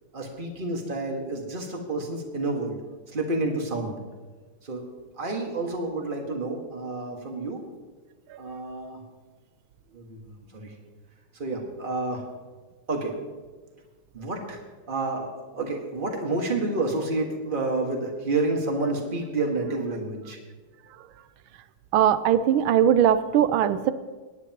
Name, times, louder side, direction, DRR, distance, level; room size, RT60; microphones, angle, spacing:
voice 1, 0.1-2.8 3.1-4.0 4.6-4.9 5.2-7.6 8.4-9.0 9.9-10.7 11.3-12.2 12.9-13.2 14.1-14.6 14.9-20.4, right 2 dB, 25° right, 1 dB, 1.8 m, -29 dB
voice 2, 21.9-23.9, right 10 dB, 80° right, 13 dB, 1.5 m, -20 dB
27.0 x 9.9 x 3.0 m, 1.4 s
omnidirectional pair, 2.3 m